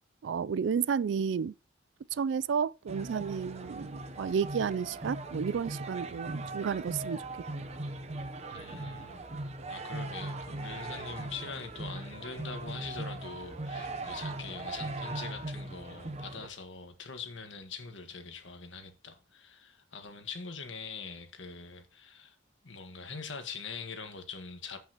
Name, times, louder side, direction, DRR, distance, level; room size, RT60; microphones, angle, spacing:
voice 1, 0.2-1.5 2.1-7.2 7.6-7.7, right 6 dB, 70° right, 0.3 m, -32 dB
sound 1, 2.9-16.5, right 2 dB, 35° right, 0.8 m, -39 dB
voice 2, 8.5-9.2 9.7-22.4 22.6-24.8, left 5 dB, 75° left, 1.6 m, -43 dB
14.0 x 5.6 x 2.9 m
head